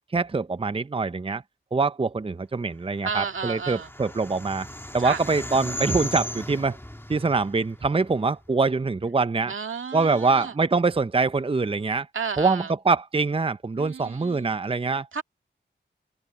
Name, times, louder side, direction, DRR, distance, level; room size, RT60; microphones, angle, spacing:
voice 1, 0.1-1.4 1.7-4.7 4.9-6.8 7.1-9.5 9.9-12.1 12.4-15.1, right 4 dB, 25° right, 0.6 m, -24 dB
voice 2, 3.0-3.9 5.0-5.2 9.5-10.5 12.1-12.7 13.8-14.5 15.1-15.2, right 5 dB, 75° right, 2.0 m, -32 dB
sound 1, 3.1-8.5, left 1 dB, 10° left, 2.1 m, -36 dB
open air
cardioid pair, 50°, 21 cm